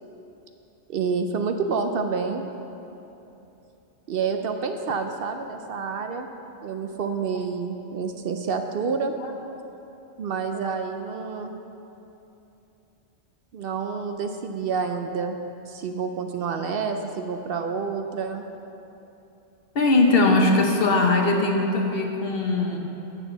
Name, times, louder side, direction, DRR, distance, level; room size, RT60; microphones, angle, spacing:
voice 1, 0.9-2.4 4.1-6.3 6.6-9.1 10.2-11.5 13.5-15.4 15.7-18.4, right 5 dB, 65° right, 6 dB, 0.7 m, -28 dB
voice 2, 19.7-22.8, left 2 dB, 60° left, 1 dB, 1.1 m, -21 dB
12.0 x 8.1 x 3.9 m, 3.0 s
omnidirectional pair, 1.2 m